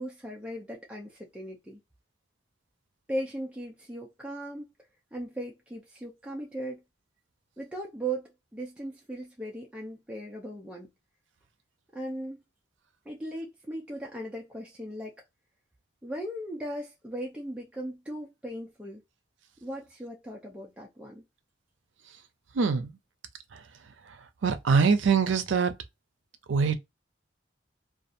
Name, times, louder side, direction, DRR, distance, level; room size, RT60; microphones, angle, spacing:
voice 1, 0.0-1.8 3.1-4.7 5.1-6.8 7.6-10.9 11.9-12.4 13.1-15.2 16.0-19.0 19.6-21.2, right 1 dB, 5° right, 0.4 m, -38 dB
voice 2, 22.5-23.0 24.4-25.7 26.5-26.8, right 5 dB, 85° right, 0.5 m, -23 dB
2.6 x 2.4 x 2.5 m
head